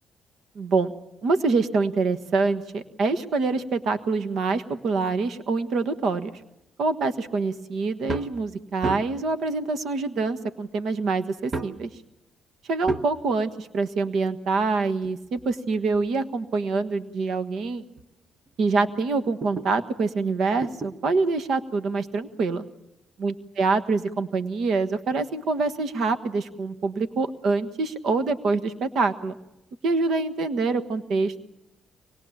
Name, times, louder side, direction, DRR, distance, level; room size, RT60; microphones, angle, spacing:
voice 1, 0.5-0.9 1.2-6.3 6.8-11.9 12.7-17.8 18.6-22.6 23.2-29.4 29.8-31.4, right 3 dB, 65° right, 10 dB, 1.4 m, -25 dB
sound 1, 8.0-8.4 8.8-9.3 10.3-10.4 11.5-11.9 12.9-13.2 14.6-16.2 16.8-16.9 17.6-17.7 18.0-18.1 18.5-19.7 20.6-21.0 22.3-22.4, right 3 dB, 35° right, 1.1 m, -34 dB
24.0 x 21.0 x 7.3 m, 0.90 s
cardioid pair, 90°, 0 cm